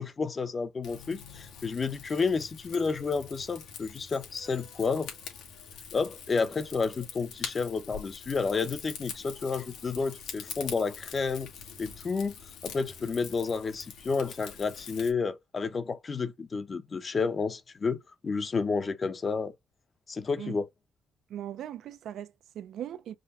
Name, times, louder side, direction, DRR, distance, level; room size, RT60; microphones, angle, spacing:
voice 1, 0.0-5.1 5.9-11.5 11.8-12.3 12.6-19.5 20.1-20.7, left 4 dB, 35° left, 0.8 m, -30 dB
Rain / Fire, 0.8-15.1, left 7 dB, 85° left, 1.8 m, -44 dB
voice 2, 21.3-23.2, right 10 dB, 75° right, 0.5 m, -39 dB
5.0 x 2.3 x 4.1 m
cardioid pair, 90°, 0 cm